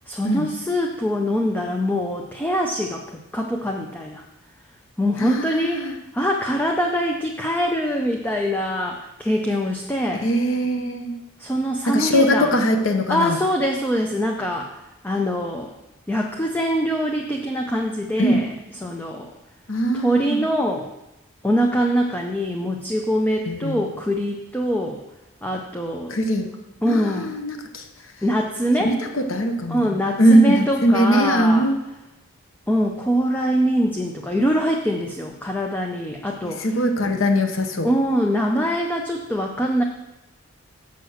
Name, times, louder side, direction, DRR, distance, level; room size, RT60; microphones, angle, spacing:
voice 1, 0.1-4.2 5.0-10.3 11.4-12.5 13.1-15.7 16.1-18.5 18.8-19.3 19.9-20.9 21.4-25.0 25.4-26.2 26.8-27.4 28.2-28.9 29.7-31.7 32.7-36.7 37.8-39.8, equal, 10° left, 1 dB, 0.6 m, -23 dB
voice 2, 5.2-5.9 10.2-11.1 11.9-13.4 18.2-18.5 19.7-20.4 23.5-23.8 26.1-26.5 26.9-27.9 28.8-31.7 36.4-37.9, equal, 70° left, 5 dB, 1.0 m, -21 dB
6.9 x 6.6 x 6.4 m, 0.92 s
head